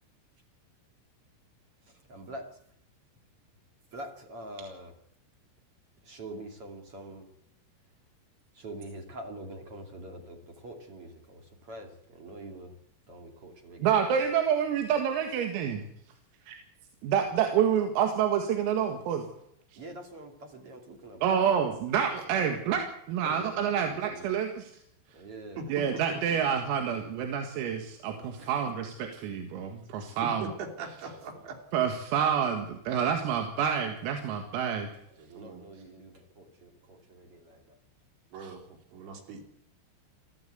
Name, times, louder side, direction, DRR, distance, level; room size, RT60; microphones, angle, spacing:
voice 1, 2.1-2.6 3.9-4.9 6.0-7.3 8.5-12.7 13.1-13.9 19.8-21.3 22.3-22.8 23.2-24.3 25.1-25.9 28.4-28.5 31.1-31.2 35.2-37.8, right 1 dB, 35° right, 4 dB, 2.7 m, -45 dB
voice 2, 13.8-15.8 16.5-16.6 17.0-19.3 19.7-19.8 21.2-22.8 23.1-24.7 25.7-30.5 31.7-34.9 38.4-38.5, right 8 dB, 85° right, 4 dB, 4.6 m, -28 dB
voice 3, 25.6-26.2 29.1-29.2 30.2-31.6 35.3-35.6 38.3-39.4, right 3 dB, 65° right, 4 dB, 5.1 m, -41 dB
22.5 x 15.5 x 8.2 m, 0.75 s
omnidirectional pair, 5.9 m